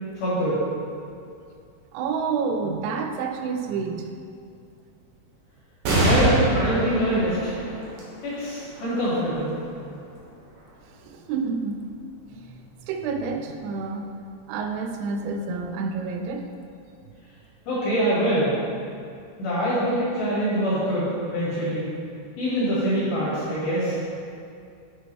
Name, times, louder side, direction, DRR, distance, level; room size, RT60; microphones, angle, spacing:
voice 1, 0.2-0.6 6.0-7.5 8.2-9.5 17.7-18.5 19.4-21.9 22.4-24.0, equal, 60° left, -9 dB, 3.0 m, -24 dB
voice 2, 1.9-4.1 11.0-11.9 12.5-14.1 14.5-16.5, right 5 dB, 85° right, 4 dB, 3.3 m, -29 dB
sound 1, 5.8-12.7 13.3-13.4 14.6-15.1, right 1 dB, 65° right, 2.3 m, -28 dB
9.4 x 6.0 x 3.3 m, 2.4 s
omnidirectional pair, 5.9 m